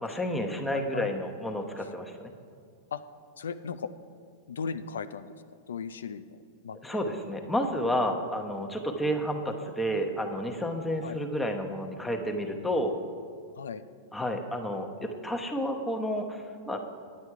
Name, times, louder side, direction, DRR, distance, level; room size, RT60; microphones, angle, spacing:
voice 1, 0.0-2.3 6.8-12.9 14.1-16.8, equal, 5° left, 2 dB, 0.9 m, -31 dB
voice 2, 0.7-1.1 2.9-3.0 3.4-3.9 4.5-5.3 5.7-6.4 6.6-7.0 11.0-11.2 13.6-13.8, left 6 dB, 90° left, 11 dB, 0.3 m, -36 dB
9.7 x 8.5 x 4.7 m, 2.3 s
hypercardioid pair, 120°, 0 cm